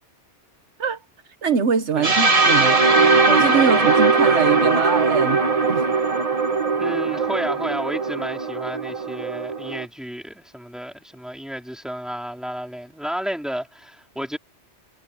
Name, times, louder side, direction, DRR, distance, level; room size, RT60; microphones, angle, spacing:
voice 1, 1.4-2.8 3.3-5.4 5.7-5.8, right 6 dB, 75° right, 1.4 m, -23 dB
sound 1, 2.0-9.8, right 4 dB, 30° right, 1.4 m, -19 dB
voice 2, 6.8-14.4, equal, ahead, 3.5 m, -32 dB
omnidirectional pair, 1.2 m